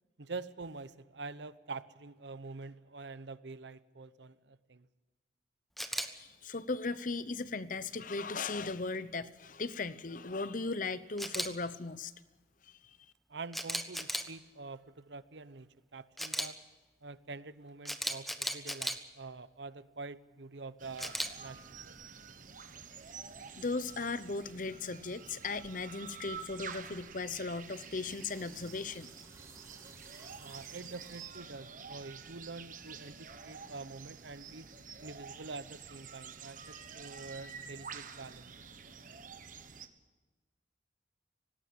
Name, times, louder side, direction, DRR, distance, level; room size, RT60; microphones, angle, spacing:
voice 1, 0.2-4.9 13.3-16.6 17.0-21.9 30.4-34.7 35.0-38.5, right 3 dB, 75° right, 15 dB, 0.9 m, -46 dB
Camera, 5.8-6.1 11.2-11.5 13.5-14.3 16.2-16.5 17.8-19.0 21.0-21.3, equal, ahead, 1.2 m, -35 dB
voice 2, 6.1-12.1 12.7-13.0 23.6-29.1, left 3 dB, 45° left, 15 dB, 0.8 m, -37 dB
sound 1, 20.8-39.9, right 6 dB, 45° right, 1.3 m, -49 dB
sound 2, 27.3-31.6, right 3 dB, 15° right, 5.5 m, -58 dB
19.0 x 17.5 x 8.6 m, 1.3 s
head